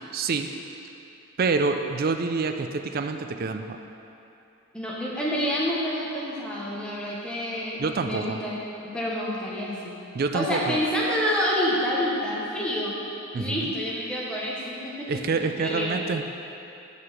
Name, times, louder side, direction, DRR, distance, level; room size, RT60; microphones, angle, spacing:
voice 1, 0.1-0.5 1.4-3.8 7.8-8.4 10.1-10.8 13.3-13.7 15.1-16.2, right 4 dB, 40° right, 6 dB, 0.3 m, -27 dB
voice 2, 4.7-8.6 8.9-10.0 10.3-12.9 13.3-15.1 15.6-16.0, equal, 5° left, -6 dB, 1.0 m, -28 dB
6.7 x 5.3 x 6.0 m, 2.9 s
head